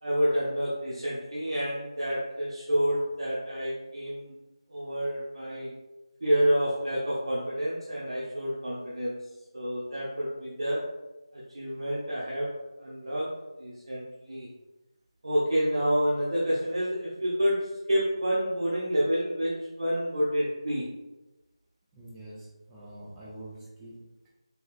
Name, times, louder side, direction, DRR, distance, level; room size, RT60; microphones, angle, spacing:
voice 1, 0.0-4.3 4.7-5.7 6.2-9.3 9.5-10.8 11.3-12.5 12.8-14.5 15.2-20.9, equal, 70° right, -6 dB, 0.6 m, -29 dB
voice 2, 21.9-24.3, right 1 dB, 5° right, -7 dB, 0.3 m, -46 dB
3.6 x 2.4 x 2.4 m, 1.1 s
figure-of-eight pair, 170°, 3 cm